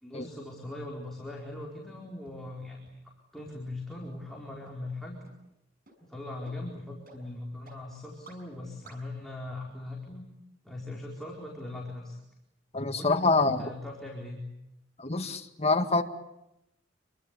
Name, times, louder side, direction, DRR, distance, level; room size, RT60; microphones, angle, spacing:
voice 1, 0.0-2.9 3.3-5.2 6.0-10.2 10.6-12.2 13.0-14.4, left 2 dB, ahead, -2 dB, 4.6 m, -40 dB
sound 1, 2.3-2.4 2.9-3.0 3.5-3.6 4.1-4.2 4.7-4.8 5.3-5.4 5.9-6.0 6.5-6.6 7.1-7.2 7.7-7.8 8.3-8.4 8.9-9.0, right 3 dB, 50° right, 6.4 m, -52 dB
voice 2, 12.7-13.6 15.0-16.0, left 3 dB, 35° left, 6 dB, 1.9 m, -26 dB
28.0 x 23.5 x 8.4 m, 0.86 s
head